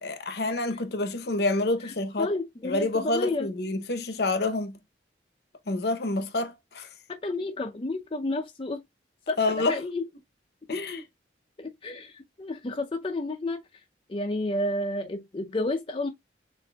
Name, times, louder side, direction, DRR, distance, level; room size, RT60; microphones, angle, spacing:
voice 1, 0.0-2.3 2.6-4.8 5.7-6.9 9.4-9.8 10.7-11.0, left 2 dB, 60° left, 0.7 m, -28 dB
voice 2, 2.2-3.5 7.1-8.8 9.3-9.4 9.7-10.0 11.6-13.6 14.1-16.1, left 2 dB, 30° left, 0.5 m, -30 dB
6.5 x 2.5 x 2.2 m
head